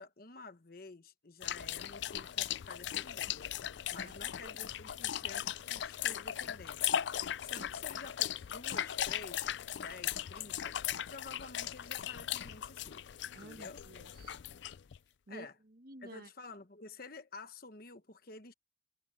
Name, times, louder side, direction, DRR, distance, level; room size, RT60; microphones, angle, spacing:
voice 1, 0.0-3.5 3.9-6.9 7.4-10.8 11.1-13.0 13.4-13.8 15.3-15.6 16.0-18.5, left 3 dB, 50° left, 1.2 m, -50 dB
sound 1, 1.4-15.0, left 11 dB, 65° left, 0.4 m, -38 dB
voice 2, 3.9-4.5 7.6-7.7 13.3-14.4 15.3-16.3, right 2 dB, 50° right, 1.3 m, -52 dB
head